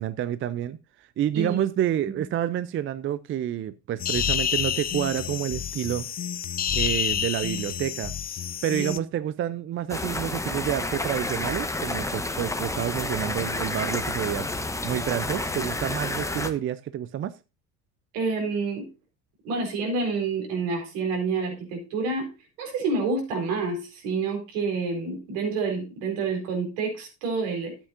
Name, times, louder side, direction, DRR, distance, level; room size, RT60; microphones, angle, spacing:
voice 1, 0.0-6.1 6.7-8.1 8.6-17.3, right 11 dB, 30° right, 0.5 m, -29 dB
sound 1, 4.0-9.0, left 9 dB, 20° left, 0.5 m, -29 dB
sound 2, 9.9-16.5, left 2 dB, 5° left, 1.0 m, -30 dB
voice 2, 18.1-18.9 19.4-22.3 22.6-27.8, right 4 dB, 70° right, 4.4 m, -28 dB
12.5 x 8.2 x 2.5 m
hypercardioid pair, 70°, 43 cm